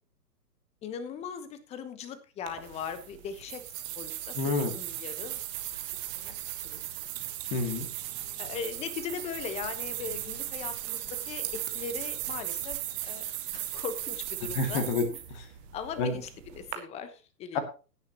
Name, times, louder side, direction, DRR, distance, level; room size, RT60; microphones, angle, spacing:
voice 1, 0.8-3.6 3.9-5.4 6.1-6.3 6.6-6.8 8.4-12.8 13.1-13.2 13.5-14.8 15.7-17.6, left 7 dB, 15° left, 12 dB, 1.0 m, -39 dB
sound 1, 2.5-16.8, right 13 dB, 10° right, 0.5 m, -37 dB
voice 2, 4.3-4.7 7.5-7.9 14.4-15.5 16.0-16.2 17.5-17.6, left 4 dB, 30° left, 7 dB, 2.3 m, -29 dB
17.0 x 9.5 x 2.9 m, 0.34 s
figure-of-eight pair, 125°, 49 cm